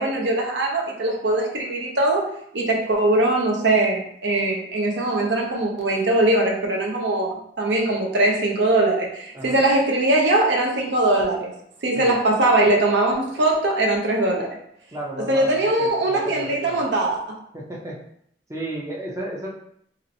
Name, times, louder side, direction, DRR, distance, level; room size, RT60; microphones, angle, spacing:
voice 1, 0.0-2.2 2.5-11.5 11.8-14.6 15.3-17.4, right 2 dB, 70° right, -1 dB, 0.7 m, -21 dB
voice 2, 14.9-16.9 17.5-18.0 18.5-19.5, right 1 dB, 15° right, -4 dB, 0.5 m, -33 dB
3.0 x 2.8 x 2.6 m, 0.70 s
head